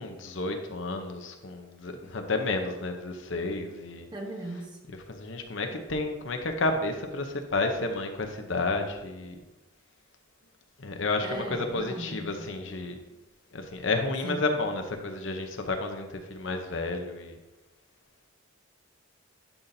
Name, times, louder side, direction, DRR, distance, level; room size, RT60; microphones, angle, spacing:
voice 1, 0.0-4.1 5.1-9.4 10.8-13.0 13.5-17.4, left 2 dB, 60° left, 5 dB, 0.8 m, -31 dB
voice 2, 4.1-4.8 11.2-12.3 14.2-14.5, right 1 dB, 20° right, 1 dB, 0.9 m, -37 dB
11.0 x 5.7 x 2.7 m, 1.1 s
head